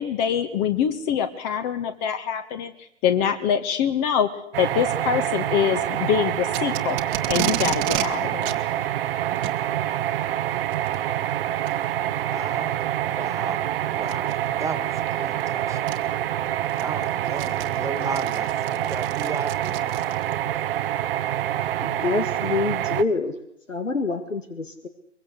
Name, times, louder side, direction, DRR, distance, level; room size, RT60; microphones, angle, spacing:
voice 1, 0.0-2.7 3.0-4.3 4.6-8.5, left 8 dB, 35° left, 9 dB, 1.9 m, -24 dB
sound 1, 4.5-23.0, right 12 dB, 50° right, 1.2 m, -26 dB
Packing tape duct tape, 6.5-8.1 8.4-8.6 9.3-9.6 10.7-11.0 11.7-11.8 12.4-12.5 14.0-14.3 15.4-15.5 15.9-16.0 16.5-20.4, right 16 dB, 30° right, 1.6 m, -31 dB
voice 2, 12.2-12.8 13.0-15.8 16.8-20.0, right 3 dB, 10° right, 11 dB, 2.2 m, -35 dB
voice 3, 21.8-23.3 23.7-24.9, left 3 dB, 85° left, 9 dB, 2.2 m, -26 dB
23.5 x 22.5 x 8.1 m, 0.71 s
figure-of-eight pair, 115°, 37 cm